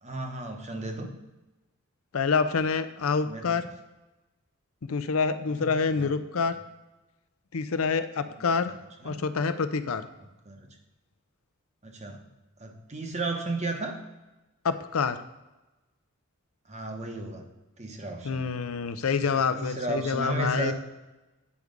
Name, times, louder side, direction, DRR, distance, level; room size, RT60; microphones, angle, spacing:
voice 1, 0.0-1.1 3.2-3.7 5.5-6.1 8.2-9.3 10.4-10.7 11.8-12.3 12.6-14.0 16.7-17.5 17.8-18.5 19.5-20.7, right 2 dB, 30° right, 4 dB, 1.0 m, -34 dB
voice 2, 2.1-3.7 4.9-6.5 7.5-8.7 9.0-10.1 14.6-15.2 18.2-20.7, left 5 dB, 75° left, 11 dB, 0.6 m, -27 dB
8.4 x 4.7 x 5.2 m, 1.0 s
head